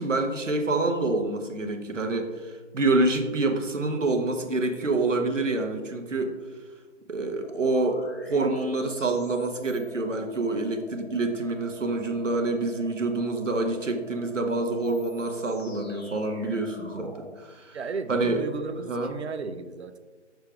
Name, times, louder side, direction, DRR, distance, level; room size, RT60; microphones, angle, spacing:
voice 1, 0.0-6.4 7.1-17.8 18.1-18.4 18.9-19.1, right 2 dB, 80° right, 5 dB, 1.0 m, -27 dB
sound 1, 7.4-17.3, left 2 dB, 55° left, 1.8 m, -47 dB
voice 2, 17.7-20.0, right 4 dB, 60° right, 11 dB, 0.6 m, -35 dB
6.5 x 6.4 x 2.4 m, 1.3 s
figure-of-eight pair, 150°, 37 cm